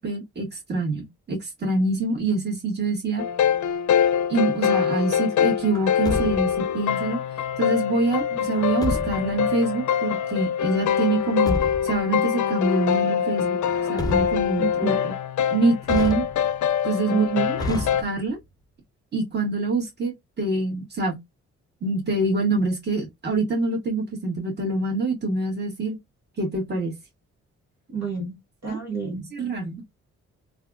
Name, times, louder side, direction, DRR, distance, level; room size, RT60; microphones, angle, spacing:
voice 1, 0.0-3.2 4.3-7.2 7.6-13.6 13.9-15.1 15.5-16.3 16.8-17.2 17.7-18.4 19.1-21.2 21.8-26.0 26.4-27.0 28.7-28.8 29.3-29.8, right 2 dB, 35° right, 1.7 m, -25 dB
sound 1, 3.2-18.0, left 8 dB, 70° left, 0.6 m, -24 dB
Truck, 5.7-6.7 8.5-9.4 11.1-12.0 13.6-14.7 15.8-16.7 17.6-18.4, left 2 dB, 15° left, 0.7 m, -31 dB
voice 2, 14.6-15.0 17.1-17.6 27.9-28.4 28.6-29.3, right 6 dB, 60° right, 1.6 m, -27 dB
3.3 x 2.4 x 2.4 m
supercardioid pair, 65°, 31 cm